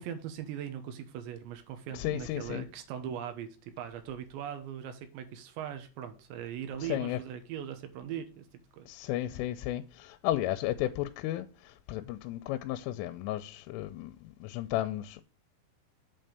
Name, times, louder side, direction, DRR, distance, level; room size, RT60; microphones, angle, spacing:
voice 1, 0.0-8.5 8.8-8.9, right 9 dB, 75° right, 3.1 m, -40 dB
voice 2, 1.9-2.6 6.8-7.2 8.9-15.2, left 14 dB, 85° left, 3.1 m, -34 dB
7.9 x 4.4 x 6.6 m
omnidirectional pair, 5.6 m